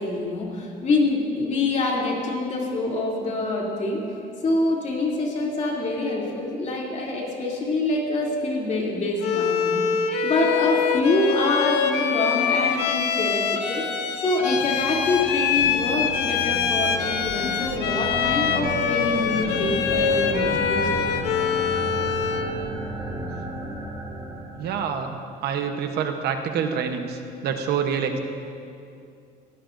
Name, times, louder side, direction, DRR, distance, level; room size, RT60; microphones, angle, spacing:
voice 1, 0.0-4.0 4.4-9.8 10.2-13.8 14.2-21.1, left 2 dB, 45° left, -2 dB, 3.0 m, -25 dB
Bowed string instrument, 9.2-22.6, left 7 dB, 85° left, 0.9 m, -24 dB
sound 1, 14.5-25.0, right 1 dB, 25° right, 3.8 m, -33 dB
voice 2, 24.6-28.2, right 7 dB, 70° right, 5 dB, 1.0 m, -27 dB
18.0 x 16.5 x 2.6 m, 2.5 s
cardioid pair, 110°, 17 cm